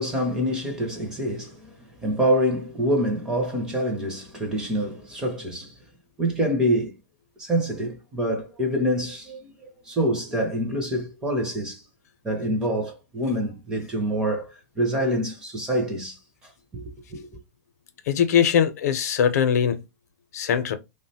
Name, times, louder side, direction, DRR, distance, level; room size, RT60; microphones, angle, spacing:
voice 1, 0.0-5.7 6.2-7.0 7.4-9.5 9.9-11.8 12.2-16.2 16.7-17.3, equal, 10° right, 0.5 m, -26 dB
voice 2, 18.1-19.8 20.3-20.8, left 8 dB, 70° left, 0.6 m, -21 dB
3.4 x 2.1 x 2.7 m
supercardioid pair, 180°, 9 cm